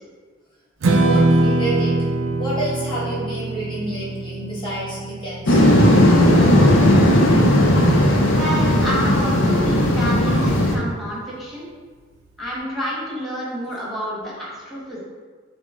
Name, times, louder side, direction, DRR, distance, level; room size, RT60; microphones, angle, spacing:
voice 1, 0.8-1.9 2.4-5.6, right 1 dB, 25° left, -8 dB, 1.2 m, -29 dB
Strum, 0.8-7.1, right 2 dB, 85° right, 0.5 m, -22 dB
sound 1, 5.5-10.8, left 1 dB, 65° left, 0.6 m, -15 dB
voice 2, 8.3-11.7 12.4-15.0, equal, ahead, -8 dB, 1.2 m, -28 dB
5.9 x 2.0 x 3.6 m, 1.5 s
head